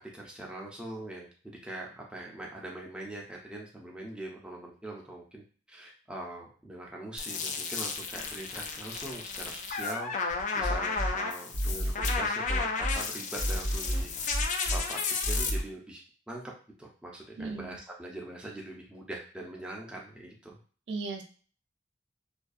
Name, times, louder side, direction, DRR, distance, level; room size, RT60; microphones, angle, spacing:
voice 1, 0.0-5.4 5.7-14.1 14.7-15.0 15.2-16.4 16.8-20.6, right 1 dB, 5° right, -2 dB, 0.5 m, -42 dB
sound 1, 7.2-15.5, left 5 dB, 45° left, 0.3 m, -33 dB
sound 2, 10.3-11.1 11.5-13.0 13.4-14.8 15.2-15.6, equal, 65° left, 1.3 m, -30 dB
voice 2, 17.4-17.8 20.9-21.2, right 4 dB, 70° right, 4 dB, 0.4 m, -36 dB
2.5 x 2.2 x 2.3 m, 0.40 s
head